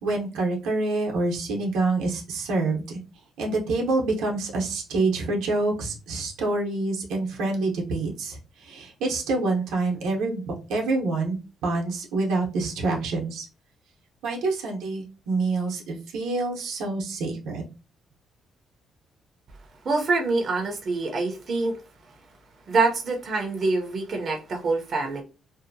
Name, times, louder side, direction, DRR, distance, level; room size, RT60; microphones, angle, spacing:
voice 1, 0.0-3.0 3.4-8.3 8.7-11.4 11.6-13.4 14.2-17.7, right 3 dB, 90° right, 0.8 m, -26 dB
voice 2, 19.8-21.8 22.7-25.2, right 3 dB, 50° right, 0.6 m, -25 dB
2.7 x 2.1 x 2.6 m
cardioid pair, 90°, 0 cm